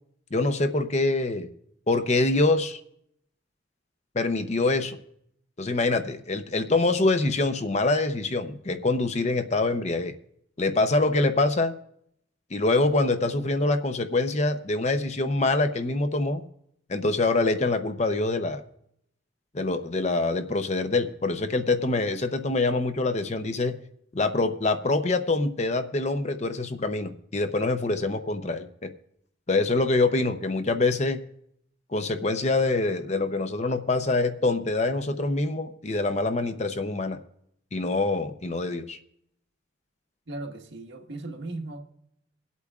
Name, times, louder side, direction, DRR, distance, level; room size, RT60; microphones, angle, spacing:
voice 1, 0.3-1.5 1.9-2.8 4.1-5.0 5.6-10.1 10.6-11.7 12.5-16.4 16.9-18.6 19.5-23.8 24.1-28.9 29.5-31.2 31.9-37.2 37.7-39.0, left 2 dB, 35° left, 0.6 m, -25 dB
voice 2, 40.3-41.8, right 2 dB, 65° right, 1.4 m, -37 dB
24.5 x 8.3 x 2.4 m
head